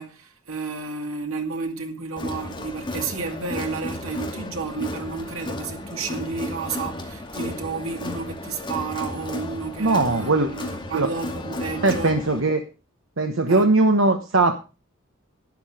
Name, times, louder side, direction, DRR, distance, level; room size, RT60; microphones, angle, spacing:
voice 1, 0.0-12.2 13.5-13.6, right 4 dB, 90° right, 2.4 m, -31 dB
Crowd, 2.2-12.4, left 2 dB, 25° left, 2.4 m, -34 dB
voice 2, 9.8-10.5 10.9-11.1 11.8-12.7 13.2-14.6, right 2 dB, 70° right, 1.1 m, -20 dB
12.0 x 10.5 x 4.9 m
head